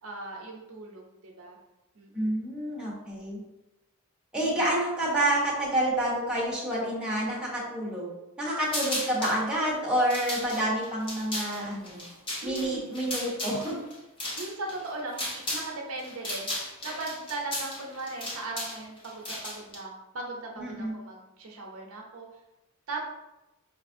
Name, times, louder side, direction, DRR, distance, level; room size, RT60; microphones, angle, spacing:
voice 1, 0.0-1.6 1.9-2.3 4.4-4.5 12.4-12.9 14.4-22.3 22.9-23.1, right 2 dB, 70° right, -1 dB, 0.7 m, -38 dB
voice 2, 2.1-3.4 4.3-8.1 8.4-12.0 12.4-13.7 20.6-21.0, right 1 dB, 5° right, -6 dB, 0.9 m, -28 dB
sound 1, 8.7-9.4 9.9-15.7 16.0-19.8, left 1 dB, 25° left, 0.8 m, -35 dB
5.1 x 2.4 x 2.6 m, 0.96 s
head